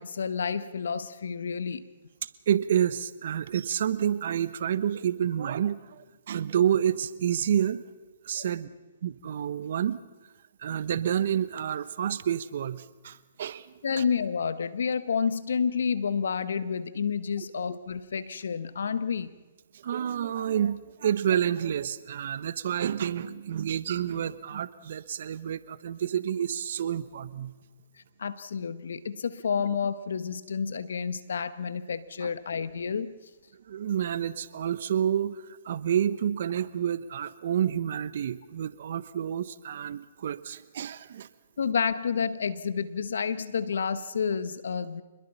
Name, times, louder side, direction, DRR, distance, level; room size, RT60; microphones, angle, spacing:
voice 1, 0.0-1.8 8.3-8.5 13.8-19.3 28.2-33.1 41.6-45.0, left 6 dB, 75° left, 14 dB, 1.3 m, -30 dB
voice 2, 2.2-7.8 8.2-8.7 9.0-10.0 10.6-13.7 14.0-14.1 17.6-17.7 19.8-27.5 32.2-32.3 33.7-41.3, right 9 dB, 60° right, 15 dB, 1.1 m, -29 dB
26.5 x 21.0 x 5.7 m, 1.2 s
hypercardioid pair, 135°, 0 cm